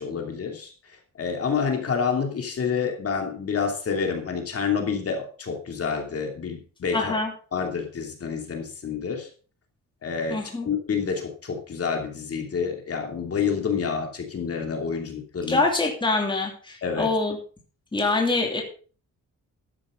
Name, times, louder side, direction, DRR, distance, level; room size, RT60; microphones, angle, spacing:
voice 1, 0.0-7.1 7.5-9.3 10.0-15.6 16.8-17.1, left 6 dB, 45° left, 3 dB, 2.8 m, -28 dB
voice 2, 6.9-7.3 10.3-10.7 15.5-17.4 17.9-18.6, left 3 dB, 15° left, 1 dB, 2.8 m, -24 dB
13.5 x 11.0 x 3.8 m, 0.39 s
wide cardioid pair, 160°, 33 cm